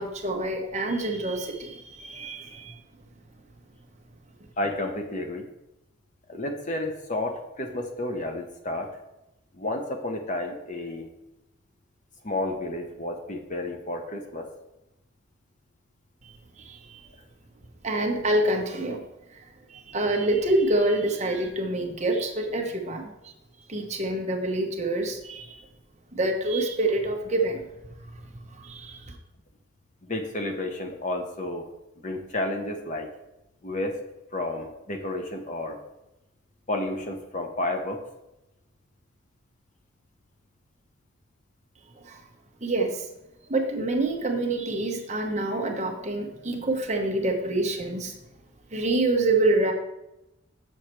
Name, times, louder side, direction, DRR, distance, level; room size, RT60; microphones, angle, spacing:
voice 1, 0.0-2.8 16.2-17.1 17.8-19.0 19.3-19.4 19.7-23.3 23.7-25.6 26.1-27.7 28.0-28.1 28.5-29.2 41.9-42.2 42.6-43.1 43.5-48.1 48.7-49.7, right 2 dB, 35° right, 2 dB, 1.0 m, -27 dB
voice 2, 4.6-5.5 6.3-8.9 9.6-11.1 12.2-14.5 30.0-31.7 32.0-33.1 33.6-34.0 34.3-35.8 36.7-38.0, left 1 dB, 40° left, 4 dB, 1.0 m, -31 dB
6.5 x 6.5 x 4.4 m, 0.91 s
head